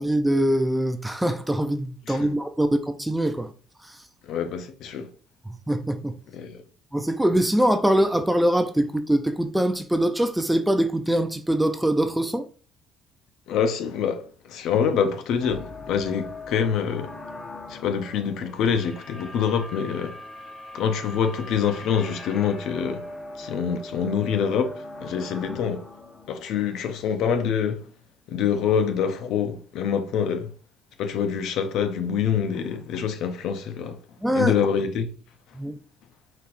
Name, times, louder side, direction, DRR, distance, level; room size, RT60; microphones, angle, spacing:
voice 1, 0.0-3.5 3.8-4.0 5.5-6.1 6.9-12.4 34.2-34.5 35.6-35.8, right 1 dB, 5° right, 0.4 m, -23 dB
voice 2, 4.2-5.1 6.3-6.6 13.5-17.1 17.7-20.2 20.7-23.0 23.4-25.9 26.3-27.9 28.3-30.5 31.0-34.0 34.3-35.1, left 7 dB, 70° left, 0.5 m, -26 dB
sound 1, 15.4-27.5, left 2 dB, 25° left, 0.8 m, -40 dB
4.1 x 4.1 x 2.5 m
cardioid pair, 105°, 0 cm